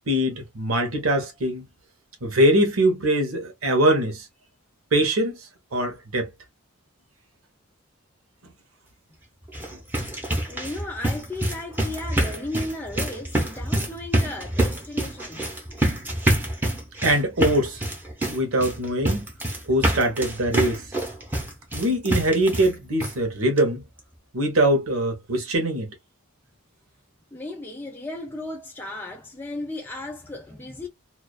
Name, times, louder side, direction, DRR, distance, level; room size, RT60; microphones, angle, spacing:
voice 1, 0.1-1.6 2.2-4.3 4.9-5.4 5.7-6.3 17.0-17.8 18.3-19.3 19.7-20.8 21.7-23.8 24.3-25.9, right 1 dB, 80° right, 1.0 m, -22 dB
sound 1, 9.4-22.7 23.0-23.1 23.6-23.7 24.0-24.1, right 1 dB, 10° right, 0.8 m, -26 dB
voice 2, 10.4-15.5 27.3-30.9, left 2 dB, 10° left, 0.4 m, -35 dB
2.3 x 2.3 x 2.3 m
head